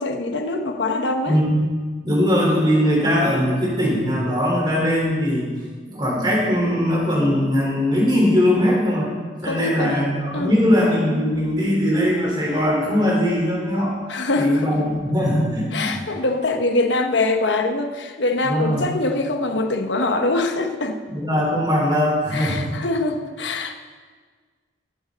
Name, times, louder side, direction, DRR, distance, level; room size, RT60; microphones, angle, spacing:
voice 1, 0.0-1.4 9.4-10.0 10.3-10.6 14.1-15.0 15.7-21.0 22.3-23.7, left 2 dB, 90° left, 6 dB, 1.1 m, -23 dB
voice 2, 1.3-1.7 2.0-5.5 5.9-9.1 9.4-14.0 14.3-16.0 18.5-18.9 21.1-22.7, equal, 25° right, -3 dB, 4.4 m, -20 dB
18.5 x 13.5 x 4.2 m, 1.5 s
head